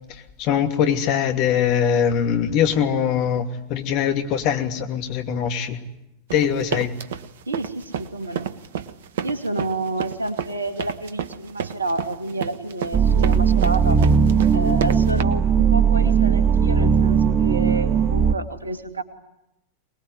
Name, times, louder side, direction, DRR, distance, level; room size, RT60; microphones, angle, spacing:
voice 1, 0.4-5.8 6.3-6.9, left 8 dB, 40° left, 6 dB, 2.7 m, -22 dB
sound 1, 6.3-15.2, right 8 dB, 60° right, 1.4 m, -30 dB
voice 2, 7.5-8.5 9.2-14.0 14.5-19.0, right 2 dB, 75° right, 8 dB, 2.4 m, -29 dB
sound 2, 12.9-18.3, right 6 dB, 25° right, 1.2 m, -18 dB
24.5 x 21.0 x 9.8 m, 0.91 s
figure-of-eight pair, 90°, 0 cm